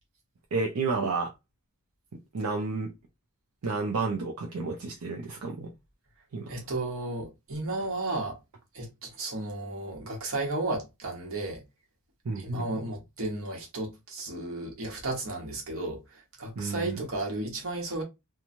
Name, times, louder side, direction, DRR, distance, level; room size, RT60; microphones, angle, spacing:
voice 1, 0.5-1.3 2.3-2.9 3.6-5.7 6.3-6.5 12.3-12.6 16.6-17.0, right 3 dB, 85° right, 0.6 m, -31 dB
voice 2, 6.5-8.4 8.7-11.6 12.3-18.0, right 2 dB, 65° right, 1.1 m, -34 dB
3.0 x 2.3 x 2.5 m
head